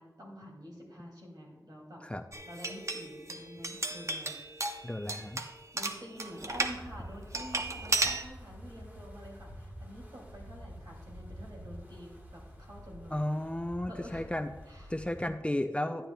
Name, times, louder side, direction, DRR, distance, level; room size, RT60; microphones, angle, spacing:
voice 1, 0.0-2.0 2.5-4.4 5.7-13.4 13.8-14.2 14.7-14.9 15.8-16.1, equal, 65° right, -1 dB, 2.5 m, -48 dB
sound 1, 2.3-6.8 7.3-8.2, right 2 dB, 45° right, 0.7 m, -34 dB
voice 2, 4.8-5.4 13.1-14.5 14.9-16.1, left 1 dB, 15° left, 7 dB, 0.4 m, -33 dB
Wind, 6.2-15.3, equal, 25° right, 1.5 m, -48 dB
12.0 x 8.8 x 2.3 m, 1.1 s
wide cardioid pair, 65°, 7 cm